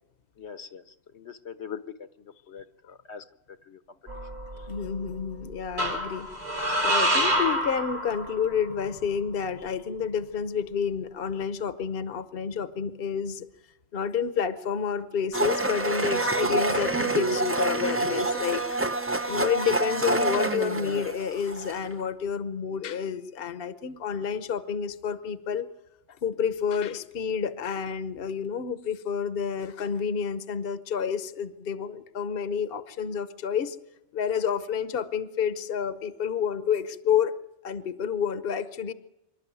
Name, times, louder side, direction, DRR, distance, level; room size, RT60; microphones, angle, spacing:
voice 1, 0.4-0.8 1.1-3.2 3.7-3.8 6.7-6.8, left 7 dB, 75° left, 11 dB, 1.3 m, -42 dB
sound 1, 4.1-4.9 5.8-8.7, equal, 65° right, 4.5 m, -27 dB
voice 2, 4.7-6.3 6.8-13.5 13.9-18.7 19.3-25.7 26.2-33.8 34.1-37.3 37.6-38.9, left 7 dB, 55° left, 12 dB, 1.1 m, -29 dB
Domestic sounds home sounds, 15.3-21.9, right 2 dB, 15° right, 0.6 m, -27 dB
26.0 x 12.0 x 9.2 m, 0.94 s
omnidirectional pair, 1.2 m